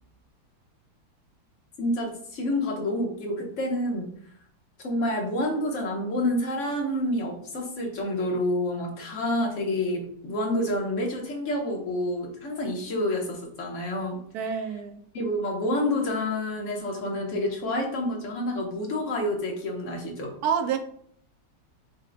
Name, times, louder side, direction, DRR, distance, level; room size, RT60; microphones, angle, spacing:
voice 1, 1.8-4.1 4.8-14.2 15.1-20.3, left 1 dB, 50° left, 0 dB, 1.2 m, -28 dB
voice 2, 14.3-15.0 20.4-20.8, right 7 dB, 70° right, 7 dB, 1.0 m, -27 dB
5.8 x 2.2 x 3.8 m, 0.64 s
omnidirectional pair, 1.9 m